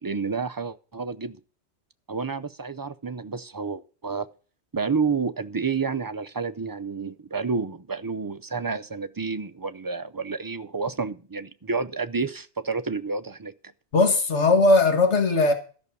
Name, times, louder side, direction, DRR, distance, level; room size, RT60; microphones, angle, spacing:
voice 1, 0.0-1.4 2.1-4.3 4.7-13.5, right 5 dB, 30° right, 0.4 m, -30 dB
voice 2, 13.9-15.5, left 3 dB, 80° left, 1.9 m, -19 dB
13.0 x 6.1 x 6.7 m
omnidirectional pair, 1.2 m